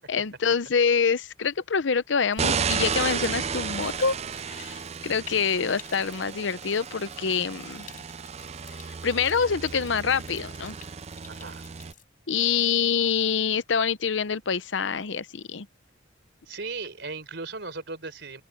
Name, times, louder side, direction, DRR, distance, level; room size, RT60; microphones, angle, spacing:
voice 1, 0.0-4.2 4.5-7.9 8.7-10.8 12.3-15.7, left 6 dB, 75° left, 0.7 m, -26 dB
Stream, 2.3-12.0, left 9 dB, 45° left, 5.7 m, -51 dB
sound 1, 2.4-11.9, right 6 dB, 35° right, 0.5 m, -33 dB
voice 2, 11.3-11.6 16.5-18.4, right 4 dB, 65° right, 4.3 m, -37 dB
open air
head